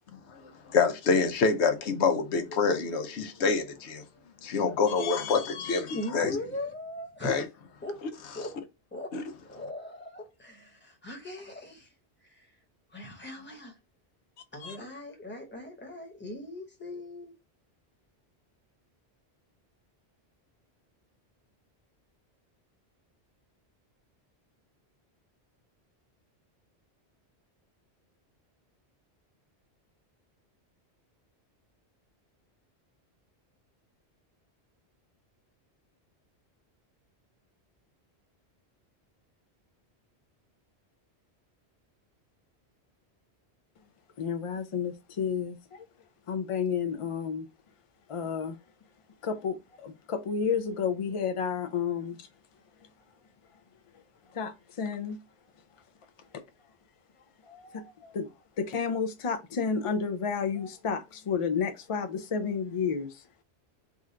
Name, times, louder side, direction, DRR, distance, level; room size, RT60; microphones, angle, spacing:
voice 1, 0.3-4.0 4.4-6.4 7.2-7.4 9.1-9.2, left 5 dB, 85° left, 1.0 m, -26 dB
voice 2, 5.0-6.0 14.6-14.8 44.2-45.8 46.3-47.5 48.1-48.6 49.2-52.3 54.3-55.2 57.5-58.3 58.6-63.2, left 6 dB, 60° left, 0.3 m, -31 dB
voice 3, 5.9-7.3 7.8-8.0 8.3-8.6 8.9-9.1 9.4-11.9 12.2-12.5 12.9-13.8 14.5-17.3, left 1 dB, 10° left, 0.9 m, -39 dB
3.8 x 2.5 x 4.2 m
omnidirectional pair, 1.1 m